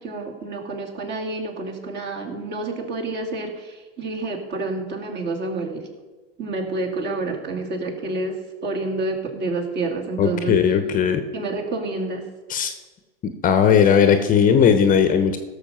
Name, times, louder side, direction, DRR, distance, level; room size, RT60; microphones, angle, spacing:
voice 1, 0.0-5.9 6.4-10.6 11.3-12.3, right 3 dB, 35° right, 2 dB, 2.6 m, -28 dB
voice 2, 10.2-11.2 12.5-12.7 13.4-15.4, left 7 dB, 25° left, 8 dB, 0.9 m, -17 dB
16.5 x 6.8 x 5.6 m, 1.3 s
hypercardioid pair, 110°, 31 cm